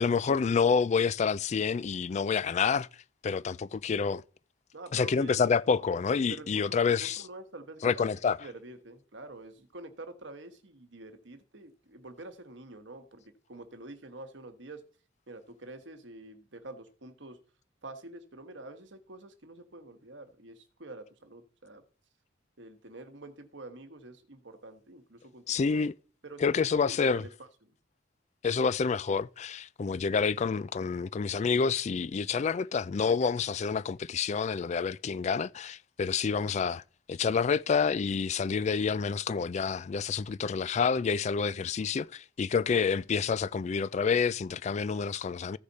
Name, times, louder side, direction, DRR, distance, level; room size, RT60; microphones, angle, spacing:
voice 1, 0.0-2.9 3.2-4.2 4.9-7.3 7.8-8.4 25.5-25.9 26.4-27.2 28.4-36.8 37.1-45.6, left 5 dB, 35° left, 0.3 m, -28 dB
voice 2, 4.7-5.4 6.3-13.2 13.5-14.8 15.3-17.4 17.8-21.8 22.6-25.9 26.2-26.4 26.9-27.3, right 2 dB, 70° right, 1.3 m, -47 dB
15.0 x 5.0 x 4.1 m
head